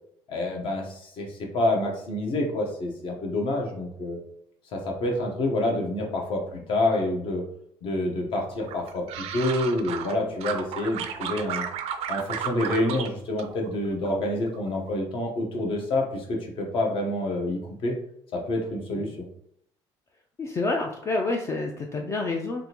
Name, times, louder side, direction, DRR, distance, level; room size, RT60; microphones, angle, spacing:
voice 1, 0.3-4.2 4.7-7.5 7.8-11.6 12.1-18.0 18.3-19.1, left 1 dB, 55° left, 1 dB, 0.9 m, -27 dB
sound 1, 8.7-10.1 10.4-13.1 13.4-14.2 14.5-14.9, right 8 dB, 80° right, 0.4 m, -33 dB
voice 2, 20.4-22.7, left 2 dB, 25° left, 2 dB, 0.3 m, -28 dB
3.5 x 2.5 x 2.9 m, 0.69 s
cardioid pair, 150°, 10 cm